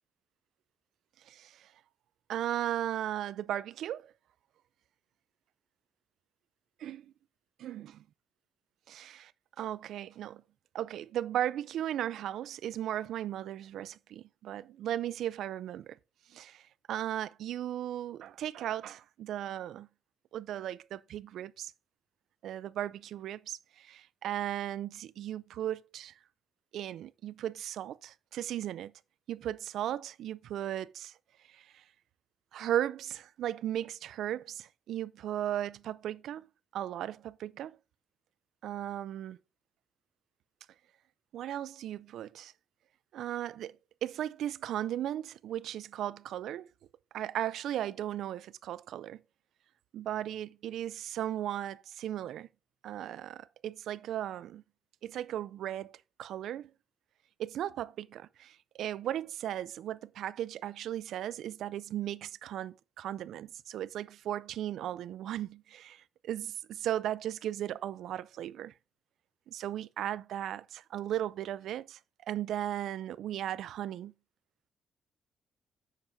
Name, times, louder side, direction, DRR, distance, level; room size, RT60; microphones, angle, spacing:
voice 1, 1.3-1.7 2.3-4.1 6.8-7.0 7.6-7.8 8.9-9.3 9.6-10.4 10.7-16.0 16.3-16.6 16.9-19.9 20.3-21.7 22.4-26.1 26.7-28.9 29.3-31.1 31.5-31.8 32.5-36.5 36.7-37.8 38.6-39.4 41.3-42.5 43.1-43.8 44.0-46.7 47.1-49.2 49.9-52.5 52.8-54.6 55.0-56.7 57.4-68.7 69.5-72.0 72.3-74.1, right 11 dB, 75° right, 0.3 m, -36 dB
9.0 x 7.7 x 2.6 m
cardioid pair, 90°, 0 cm